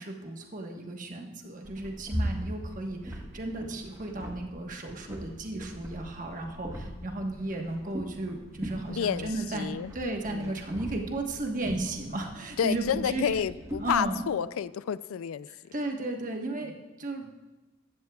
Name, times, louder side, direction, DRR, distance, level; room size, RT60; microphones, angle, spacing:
voice 1, 0.0-13.4 13.8-14.3 15.5-17.3, right 2 dB, 40° right, 1.2 m, -34 dB
sound 1, 1.6-14.0, equal, 15° right, 1.1 m, -40 dB
voice 2, 8.9-9.9 10.3-10.5 12.6-15.5, left 8 dB, 80° left, 0.3 m, -30 dB
15.5 x 12.5 x 2.3 m
head